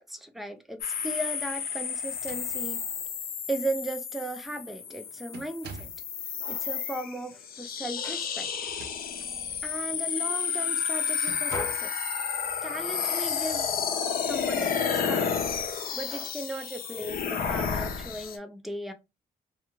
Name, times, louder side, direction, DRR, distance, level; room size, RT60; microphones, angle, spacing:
voice 1, 0.1-2.8 3.5-5.9 6.5-8.5 9.6-11.9 12.6-13.6 14.3-15.4 15.7-18.9, right 1 dB, ahead, 0.4 m, -36 dB
sound 1, 0.8-18.4, left 6 dB, 65° left, 0.5 m, -31 dB
sound 2, 2.1-3.0 3.8-3.9 4.3-4.7 5.3-6.1 8.5-9.4 9.9-10.1 11.2-11.9, right 5 dB, 80° right, 0.4 m, -46 dB
sound 3, 4.5-18.2, left 3 dB, 25° left, 0.9 m, -49 dB
2.3 x 2.2 x 3.0 m
wide cardioid pair, 155°, 16 cm